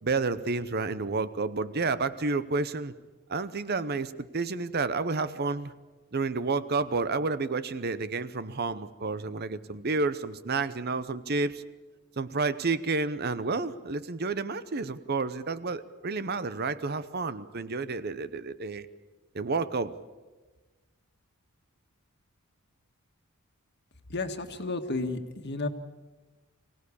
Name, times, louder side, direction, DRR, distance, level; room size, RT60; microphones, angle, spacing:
voice 1, 0.0-2.9 3.3-5.7 6.1-11.6 12.2-18.9 19.3-19.9, right 3 dB, 45° right, 14 dB, 0.8 m, -30 dB
voice 2, 24.1-25.7, left 3 dB, 50° left, 6 dB, 1.7 m, -32 dB
24.5 x 17.0 x 8.5 m, 1.2 s
head